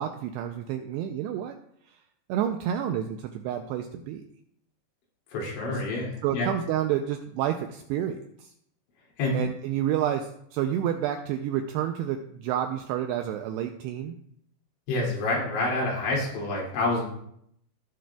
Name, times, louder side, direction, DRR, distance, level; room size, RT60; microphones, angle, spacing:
voice 1, 0.0-1.6 2.3-4.2 6.2-8.5 9.3-14.2, right 10 dB, 85° right, 5 dB, 2.5 m, -29 dB
voice 2, 5.3-6.5 9.2-9.4 14.9-17.1, left 2 dB, 85° left, -3 dB, 5.0 m, -28 dB
18.0 x 7.7 x 2.3 m, 0.71 s
omnidirectional pair, 5.2 m